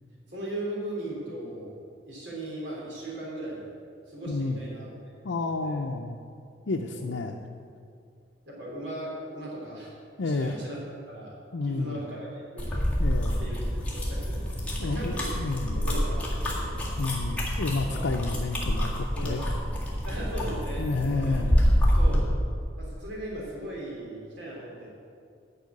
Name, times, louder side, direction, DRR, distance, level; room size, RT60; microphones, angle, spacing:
voice 1, 0.3-1.7 2.0-3.7 4.1-4.9 5.3-5.8 7.0-7.1 8.5-9.9 10.2-10.8 11.0-11.3 11.6-12.7 13.4-15.3 15.6-16.9 17.9-18.1 19.1-19.4 20.0-21.4 22.0-22.3 22.8-24.9, right 1 dB, 75° right, -4 dB, 3.3 m, -38 dB
voice 2, 4.3-4.6 5.2-6.2 6.7-7.4 10.2-10.5 11.5-12.0 13.0-13.4 14.8-15.9 17.0-19.4 20.8-21.6, left 3 dB, 90° left, 1 dB, 0.6 m, -30 dB
sound 1, 12.6-22.2, equal, 5° left, 2.0 m, -27 dB
10.5 x 5.6 x 8.5 m, 2.3 s
head